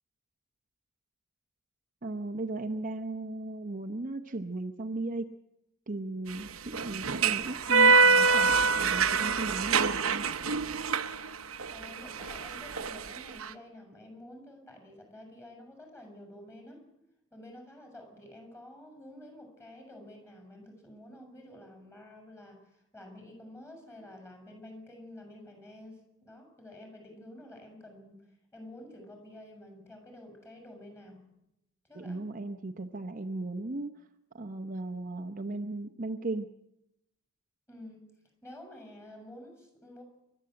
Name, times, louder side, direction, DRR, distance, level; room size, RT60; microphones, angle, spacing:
voice 1, 2.0-5.4 5.9-10.3 31.9-34.1 34.3-36.5, right 2 dB, 40° right, 5 dB, 0.9 m, -36 dB
sound 1, 6.3-13.5, right 4 dB, 85° right, 0.9 m, -26 dB
voice 2, 11.7-16.8 17.3-28.3 28.5-31.2 31.8-32.2 37.7-38.1 38.4-40.0, left 1 dB, 10° left, 4 dB, 6.6 m, -49 dB
29.0 x 13.0 x 7.8 m, 0.87 s
head